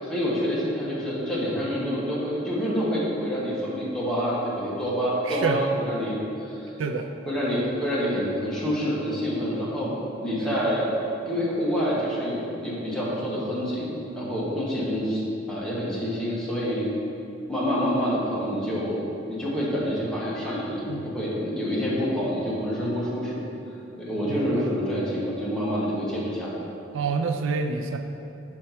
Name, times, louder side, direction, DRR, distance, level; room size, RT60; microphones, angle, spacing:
voice 1, 0.0-6.7 7.3-9.9 10.2-10.9 11.2-17.0 17.5-23.4 24.0-26.6, equal, 5° left, -7 dB, 1.2 m, -27 dB
voice 2, 5.3-5.6 6.8-7.1 10.4-10.5 20.9-21.1 24.3-24.7 26.9-28.0, right 5 dB, 85° right, 5 dB, 0.4 m, -28 dB
4.5 x 4.3 x 5.6 m, 2.8 s
head